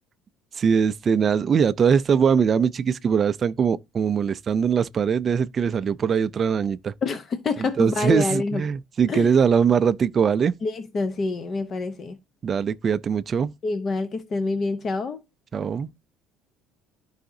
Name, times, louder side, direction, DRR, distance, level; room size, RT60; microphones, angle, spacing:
voice 1, 0.6-6.9 7.8-10.5 12.4-13.5 15.5-15.9, right 7 dB, 25° right, 0.4 m, -21 dB
voice 2, 7.0-8.6 9.1-9.3 10.6-12.2 13.6-15.2, left 3 dB, 30° left, 0.6 m, -27 dB
13.0 x 4.8 x 2.6 m
cardioid pair, 165°, 0 cm